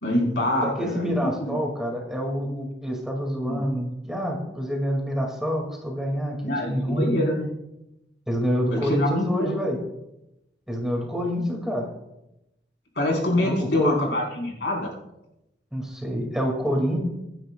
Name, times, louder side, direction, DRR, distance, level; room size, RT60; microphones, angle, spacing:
voice 1, 0.0-1.1 1.4-1.6 3.4-3.6 6.4-7.5 8.7-9.5 13.0-14.9, left 1 dB, 75° left, -2 dB, 4.3 m, -25 dB
voice 2, 0.6-7.2 8.3-9.8 10.7-11.9 13.4-14.0 15.7-17.0, equal, 5° right, 0 dB, 2.1 m, -27 dB
25.0 x 10.0 x 2.3 m, 0.90 s
head